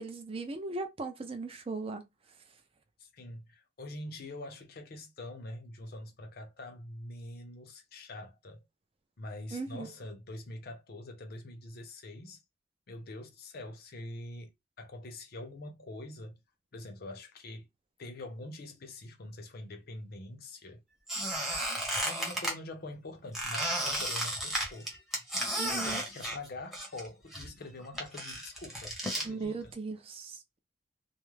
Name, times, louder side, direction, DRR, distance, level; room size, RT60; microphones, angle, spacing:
voice 1, 0.0-2.0 9.5-9.9 25.6-26.0 29.2-30.6, right 3 dB, 30° right, 0.5 m, -38 dB
voice 2, 3.0-8.7 9.2-12.4 12.9-16.4 16.7-17.7 18.0-20.8 22.0-25.0 25.6-29.7, left 2 dB, 55° left, 0.6 m, -45 dB
Squeak, 21.1-22.5 23.3-27.1 27.3-29.3, right 1 dB, ahead, 0.8 m, -33 dB
2.4 x 2.0 x 3.1 m
head